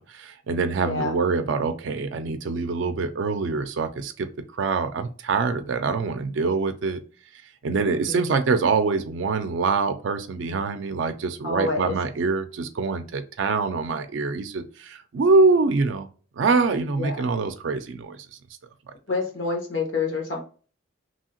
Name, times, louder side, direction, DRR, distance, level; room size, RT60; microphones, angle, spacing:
voice 1, 0.0-4.3 4.5-7.0 7.6-16.1 16.4-18.2, right 4 dB, 70° right, 8 dB, 0.4 m, -24 dB
voice 2, 0.8-1.1 7.9-8.3 11.4-11.9 17.0-17.2 19.1-20.4, left 3 dB, 85° left, 1 dB, 1.2 m, -28 dB
2.9 x 2.7 x 2.8 m, 0.38 s
head